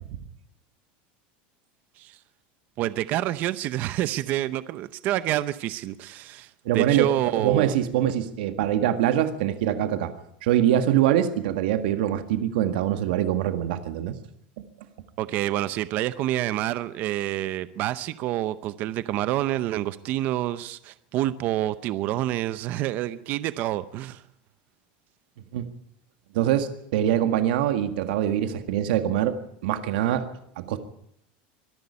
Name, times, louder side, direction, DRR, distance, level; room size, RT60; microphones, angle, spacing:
voice 1, 2.8-7.7 15.2-24.2, right 14 dB, 35° right, 15 dB, 0.7 m, -28 dB
voice 2, 6.6-10.1 10.4-14.2 25.5-25.7 26.3-30.3 30.6-30.8, right 11 dB, 75° right, 9 dB, 1.8 m, -24 dB
24.0 x 11.0 x 9.7 m, 0.74 s
supercardioid pair, 175°, 5 cm